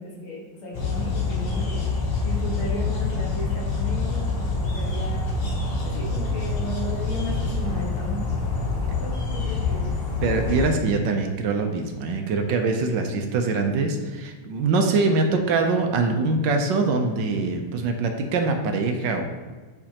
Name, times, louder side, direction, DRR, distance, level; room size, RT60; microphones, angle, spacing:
voice 1, 0.0-8.3 9.0-9.9, right 1 dB, 75° left, -4 dB, 2.3 m, -35 dB
sound 1, 0.7-10.7, left 4 dB, 45° left, 0.8 m, -26 dB
voice 2, 10.2-19.2, right 3 dB, 70° right, 4 dB, 1.2 m, -23 dB
7.2 x 5.3 x 2.9 m, 1.4 s
omnidirectional pair, 2.3 m